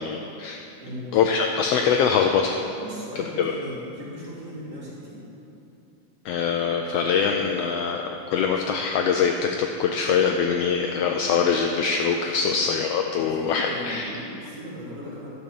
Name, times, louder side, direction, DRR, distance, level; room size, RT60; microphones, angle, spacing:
voice 1, 0.0-0.6 1.1-2.6 3.2-3.5 6.2-14.2, left 6 dB, 85° left, 3 dB, 1.4 m, -23 dB
voice 2, 0.8-1.1 2.8-5.2 13.1-15.3, equal, 50° right, -7 dB, 4.0 m, -38 dB
12.5 x 6.9 x 7.0 m, 2.8 s
omnidirectional pair, 3.5 m